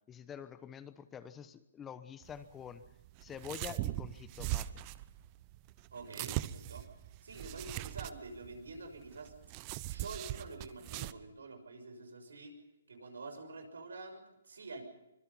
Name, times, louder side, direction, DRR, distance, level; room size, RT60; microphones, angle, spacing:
voice 1, 0.1-2.8 3.2-4.8, left 8 dB, 15° left, 12 dB, 1.0 m, -47 dB
sound 1, 2.2-11.1, right 16 dB, 30° right, 0.7 m, -41 dB
voice 2, 5.9-6.8 7.2-9.3 9.9-12.5 12.9-14.8, right 3 dB, 85° right, 6 dB, 6.3 m, -47 dB
25.0 x 21.5 x 5.6 m, 0.91 s
hypercardioid pair, 150°, 0 cm